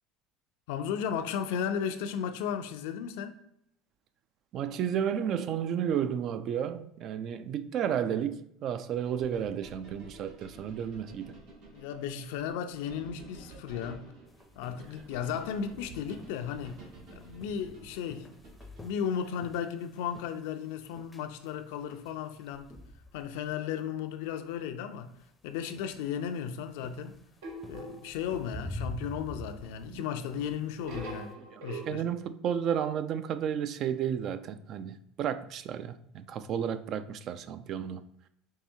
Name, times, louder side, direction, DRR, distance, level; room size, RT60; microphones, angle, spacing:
voice 1, 0.7-3.4 11.7-14.1 14.6-16.8 17.1-18.3 18.8-22.7 23.1-25.1 25.4-27.2 27.7-32.0, left 8 dB, 80° left, 0.4 m, -35 dB
voice 2, 4.5-11.3 29.9-30.0 31.5-38.0, right 9 dB, 50° right, 0.3 m, -32 dB
sound 1, 9.0-19.0, right 2 dB, 70° right, 1.3 m, -51 dB
sound 2, 14.3-23.5 23.8-24.0 25.1-25.2 25.7-31.2, left 1 dB, 10° left, 0.5 m, -46 dB
sound 3, 27.4-28.4 30.8-31.9, right 2 dB, 85° right, 1.0 m, -42 dB
4.7 x 2.7 x 2.7 m
supercardioid pair, 100°, 0 cm